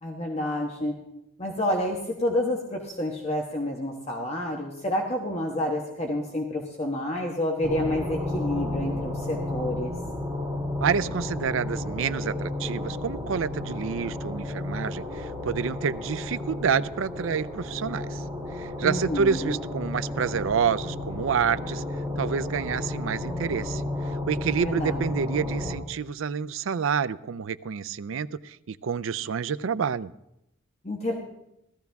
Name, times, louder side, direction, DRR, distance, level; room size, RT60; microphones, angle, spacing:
voice 1, 0.0-0.9 1.4-9.9 18.8-19.6 24.6-25.0 30.8-31.1, left 1 dB, 30° left, 0 dB, 1.3 m, -29 dB
sound 1, 7.6-25.7, left 1 dB, 15° right, 3.1 m, -32 dB
voice 2, 10.8-18.2 18.5-21.8 22.2-23.8 24.1-30.1, right 6 dB, 75° right, 15 dB, 0.4 m, -28 dB
16.5 x 13.5 x 3.5 m, 0.86 s
head